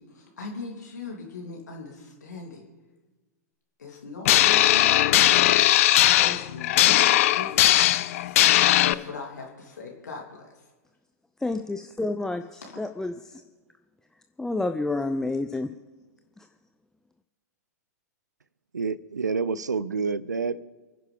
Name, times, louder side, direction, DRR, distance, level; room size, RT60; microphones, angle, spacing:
voice 1, 0.0-2.6 3.8-5.6 6.1-10.7 12.6-12.8, left 4 dB, 75° left, 3.1 m, -40 dB
sound 1, 4.3-8.9, left 14 dB, 50° left, 0.6 m, -19 dB
voice 2, 11.4-13.4 14.4-15.7 16.4-16.5, left 2 dB, 5° left, 0.5 m, -29 dB
voice 3, 18.7-20.6, right 4 dB, 80° right, 0.6 m, -28 dB
28.5 x 10.5 x 3.6 m
figure-of-eight pair, 105°, 9 cm